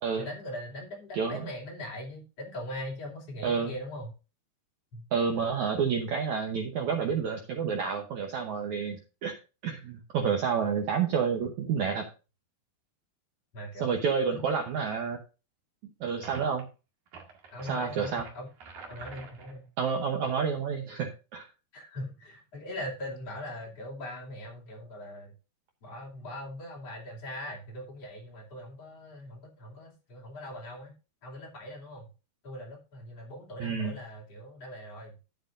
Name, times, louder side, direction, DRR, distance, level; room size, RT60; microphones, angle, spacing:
voice 1, 0.2-4.1 4.9-5.0 8.8-8.9 13.5-14.0 14.3-14.5 17.5-18.5 18.9-19.7 21.7-25.3 25.8-30.9 31.2-32.1 32.4-35.1, left 1 dB, 40° left, -2 dB, 3.5 m, -41 dB
voice 2, 1.1-1.5 3.4-3.7 5.1-9.3 9.6-12.1 13.8-15.2 16.0-16.7 17.6-18.2 19.8-21.5 33.6-34.0, right 6 dB, 75° right, 3 dB, 1.7 m, -29 dB
sound 1, 16.2-16.6 17.1-19.6, right 4 dB, 55° right, 2.9 m, -47 dB
11.0 x 9.3 x 2.6 m, 0.32 s
omnidirectional pair, 4.8 m